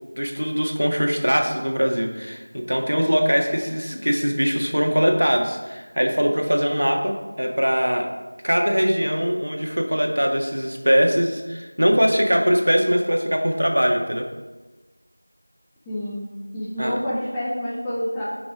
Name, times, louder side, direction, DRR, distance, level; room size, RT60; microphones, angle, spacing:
voice 1, 0.1-8.1 8.4-14.3 16.8-16.9, equal, 65° right, 2 dB, 1.6 m, -21 dB
voice 2, 15.9-18.3, equal, 5° left, -11 dB, 0.5 m, -28 dB
11.5 x 6.1 x 3.7 m, 1.2 s
figure-of-eight pair, 175°, 0 cm